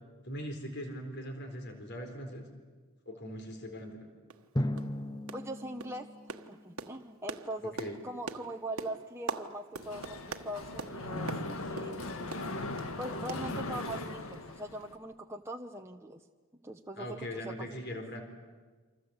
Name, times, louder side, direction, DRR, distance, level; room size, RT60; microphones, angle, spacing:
voice 1, 0.2-2.4 3.1-4.0 7.8-8.0 17.0-18.2, equal, 50° left, 5 dB, 4.2 m, -40 dB
sound 1, 3.8-3.9 4.3-4.5 4.8-5.0 5.3-5.5 5.8-12.9 13.3-14.1 14.3-14.5 14.8-14.9, right 4 dB, 80° right, 1.4 m, -43 dB
Drum, 4.6-7.3, left 1 dB, 20° left, 0.8 m, -37 dB
voice 2, 5.3-6.1 6.5-7.7 8.0-12.1 13.0-16.2 16.6-17.2 17.4-18.0, right 1 dB, 10° right, 2 dB, 0.9 m, -41 dB
Mechanisms, 9.8-15.0, left 2 dB, 75° left, 1.8 m, -39 dB
28.5 x 26.0 x 8.1 m, 1.4 s
head